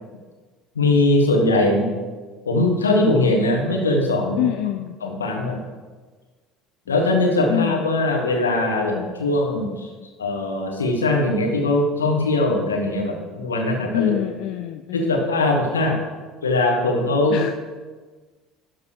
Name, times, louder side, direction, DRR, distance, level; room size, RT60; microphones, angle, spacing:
voice 1, 0.7-1.9 2.4-4.5 5.0-5.6 6.9-9.9 10.2-14.1 14.9-16.0 16.4-17.4, left 2 dB, 80° left, 1 dB, 1.4 m, -20 dB
voice 2, 4.4-5.0 6.9-7.0 7.5-7.8 13.9-15.2 17.3-17.5, left 12 dB, 55° left, 9 dB, 0.3 m, -25 dB
12.0 x 4.6 x 4.9 m, 1.4 s
figure-of-eight pair, 65°, 0 cm